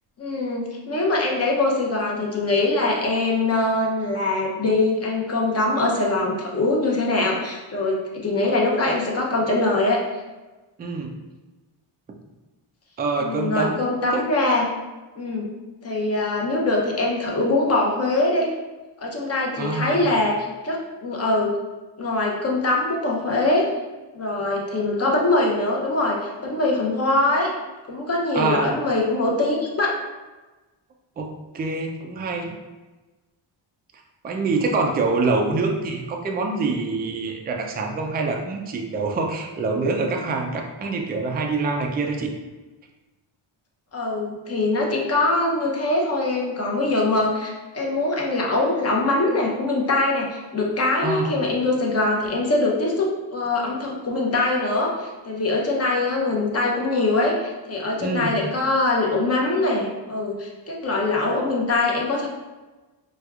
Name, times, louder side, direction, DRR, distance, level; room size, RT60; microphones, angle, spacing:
voice 1, 0.2-10.0 13.2-14.7 15.2-15.5 15.8-18.5 19.0-20.4 20.6-20.8 21.0-21.5 22.0-23.7 24.1-27.5 27.9-29.9 43.9-62.3, left 2 dB, 30° left, -1 dB, 0.7 m, -23 dB
voice 2, 10.8-11.1 13.0-13.8 14.1-14.2 19.6-20.1 28.3-28.8 31.2-32.5 34.2-42.3 51.0-51.3 58.0-58.4, right 3 dB, 25° right, 2 dB, 0.3 m, -25 dB
4.3 x 2.3 x 2.3 m, 1.2 s
cardioid pair, 105°, 47 cm